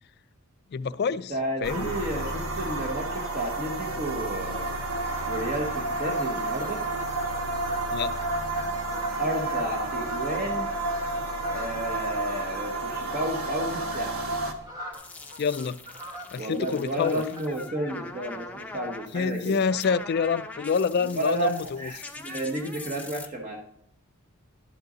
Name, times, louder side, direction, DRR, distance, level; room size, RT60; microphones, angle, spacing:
voice 1, 0.7-1.3 1.6-1.9 7.9-8.2 15.4-15.8 16.3-17.2 19.1-21.9, left 6 dB, 45° left, 0.3 m, -27 dB
voice 2, 1.3-4.7 5.3-6.8 9.2-10.8 11.5-14.1 16.4-19.6 21.0-23.6, right 1 dB, 35° right, 1.2 m, -32 dB
sound 1, 1.6-14.5, right 2 dB, 75° right, 1.3 m, -30 dB
sound 2, 4.9-17.6, equal, 15° right, 1.7 m, -44 dB
sound 3, 14.9-23.3, left 3 dB, 5° left, 0.6 m, -43 dB
11.5 x 8.0 x 3.9 m
head